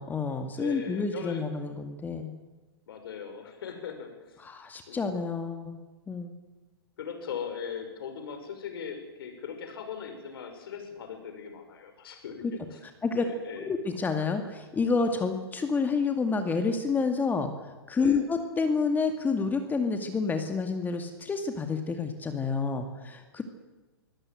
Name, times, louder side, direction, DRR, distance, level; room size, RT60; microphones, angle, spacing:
voice 1, 0.0-2.3 4.4-5.8 6.1-6.3 13.0-13.2 13.6-17.5 17.9-23.4, left 4 dB, 15° left, 6 dB, 2.3 m, -29 dB
voice 2, 0.6-1.4 2.9-4.5 4.9-5.1 7.0-12.8 13.2-13.7 18.0-18.2, left 7 dB, 65° left, 5 dB, 6.4 m, -39 dB
25.0 x 16.5 x 7.8 m, 1.2 s
hypercardioid pair, 120°, 13 cm